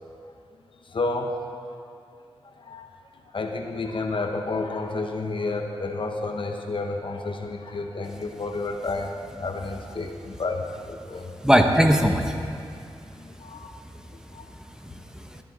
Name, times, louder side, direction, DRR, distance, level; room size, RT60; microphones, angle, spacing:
voice 1, 0.8-1.5 2.4-2.9 3.2-11.3 13.2-13.7 14.1-14.5 15.3-15.4, left 3 dB, 60° left, 4 dB, 1.0 m, -31 dB
voice 2, 11.4-12.4 13.8-14.0 14.6-15.4, equal, 5° right, 4 dB, 0.8 m, -21 dB
14.0 x 10.5 x 3.9 m, 2.4 s
wide cardioid pair, 75°, 10 cm